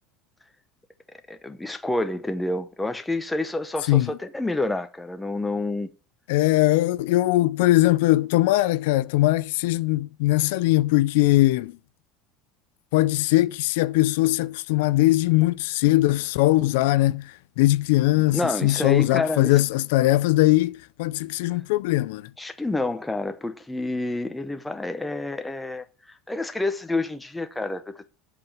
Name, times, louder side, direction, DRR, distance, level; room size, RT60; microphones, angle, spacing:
voice 1, 1.3-5.9 18.2-19.5 22.4-25.8 26.3-28.1, left 2 dB, 5° left, 0.7 m, -28 dB
voice 2, 6.3-11.7 12.9-22.2, left 17 dB, 75° left, 0.4 m, -21 dB
7.8 x 4.9 x 7.1 m
cardioid pair, 170°, 0 cm